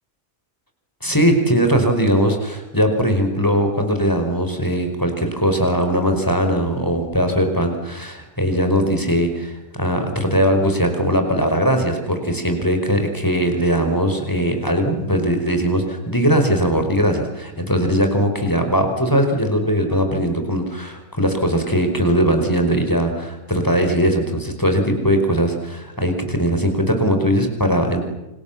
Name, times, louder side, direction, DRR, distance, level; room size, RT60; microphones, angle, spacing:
voice 1, 1.0-28.0, equal, 10° left, 5 dB, 4.9 m, -20 dB
28.5 x 26.5 x 7.3 m, 0.98 s
omnidirectional pair, 1.7 m